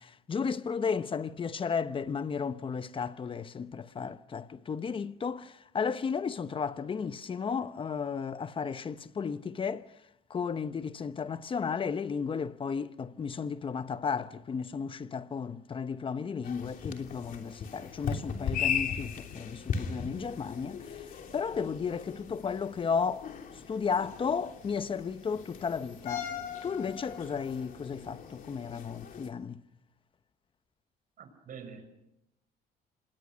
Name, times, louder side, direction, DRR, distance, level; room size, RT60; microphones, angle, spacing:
voice 1, 0.0-9.9 10.3-21.1 21.3-23.3 23.7-26.3 26.6-29.6, left 6 dB, 30° left, 0.9 m, -34 dB
sound 1, 16.4-29.3, left 7 dB, 55° left, 3.1 m, -38 dB
voice 2, 31.2-31.8, right 6 dB, 55° right, 6.5 m, -46 dB
27.5 x 21.0 x 6.3 m
cardioid pair, 110°, 17 cm